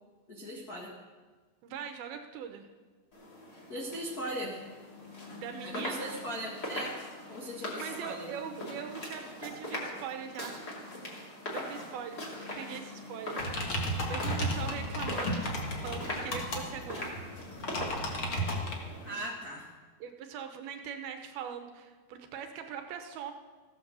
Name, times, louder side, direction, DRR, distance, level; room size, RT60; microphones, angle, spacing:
voice 1, 0.3-0.9 3.7-4.6 5.6-7.0 7.3-8.3 14.0-14.5 19.0-19.7, right 1 dB, 80° left, -3 dB, 0.8 m, -39 dB
voice 2, 1.6-2.7 5.4-6.2 7.8-10.6 11.5-13.4 14.1-15.5 15.8-17.1 20.0-23.3, right 8 dB, 75° right, 6 dB, 2.5 m, -41 dB
sound 1, 3.1-19.1, left 1 dB, 25° left, 2.9 m, -41 dB
sound 2, 13.4-18.7, equal, 50° left, 1.7 m, -34 dB
15.5 x 9.9 x 6.8 m, 1.4 s
omnidirectional pair, 4.9 m